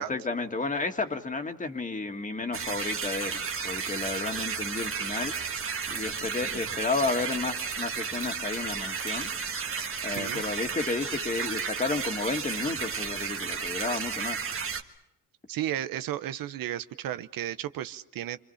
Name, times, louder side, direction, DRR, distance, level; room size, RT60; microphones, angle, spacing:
voice 1, 0.0-5.3 5.9-9.3 10.0-14.4, left 3 dB, 20° left, 5 dB, 2.2 m, -32 dB
sound 1, 2.5-14.8, right 6 dB, 35° right, 1.8 m, -33 dB
voice 2, 15.5-18.4, right 12 dB, 75° right, 13 dB, 0.9 m, -33 dB
27.5 x 26.5 x 5.7 m, 0.90 s
cardioid pair, 125°, 35 cm